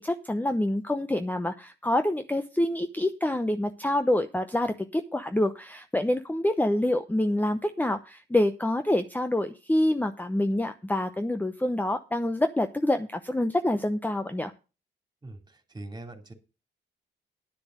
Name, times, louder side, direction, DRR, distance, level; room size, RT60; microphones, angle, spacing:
voice 1, 0.0-14.5, left 1 dB, 10° left, 8 dB, 0.8 m, -26 dB
voice 2, 15.2-16.3, right 2 dB, 20° right, 5 dB, 3.0 m, -42 dB
10.0 x 6.9 x 6.4 m, 0.31 s
cardioid pair, 70°, 19 cm